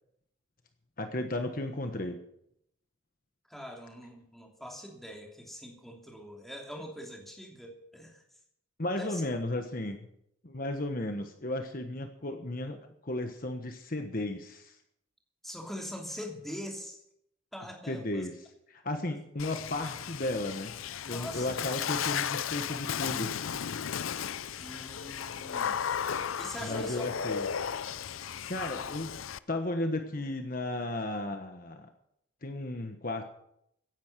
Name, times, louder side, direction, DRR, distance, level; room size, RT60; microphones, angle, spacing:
voice 1, 1.0-2.2 8.8-10.1 10.4-14.8 17.9-20.8 21.1-23.3 26.6-27.5 28.5-29.2 29.5-31.9 32.4-33.3, left 1 dB, 45° left, 6 dB, 1.3 m, -34 dB
voice 2, 3.5-8.2 9.0-9.2 15.4-17.0 17.5-18.3 21.0-21.5 24.6-25.8 26.4-27.1, equal, ahead, 0 dB, 2.9 m, -43 dB
Water / Splash splatter, 19.4-29.4, left 8 dB, 85° left, 0.6 m, -35 dB
16.5 x 10.5 x 6.7 m, 0.75 s
head